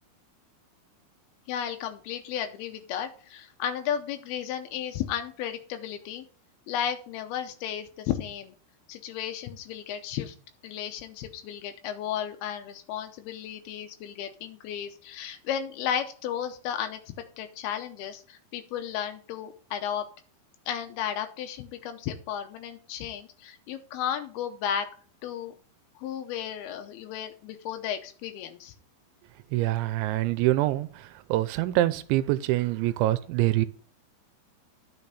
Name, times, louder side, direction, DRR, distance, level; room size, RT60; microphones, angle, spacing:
voice 1, 1.5-6.2 6.7-8.5 8.9-10.4 10.6-17.0 17.4-20.1 20.7-24.9 25.2-25.5 26.0-28.7, left 9 dB, 80° left, 7 dB, 2.3 m, -34 dB
voice 2, 29.5-33.7, right 16 dB, 85° right, 14 dB, 2.8 m, -25 dB
10.5 x 6.4 x 4.2 m, 0.42 s
omnidirectional pair, 5.4 m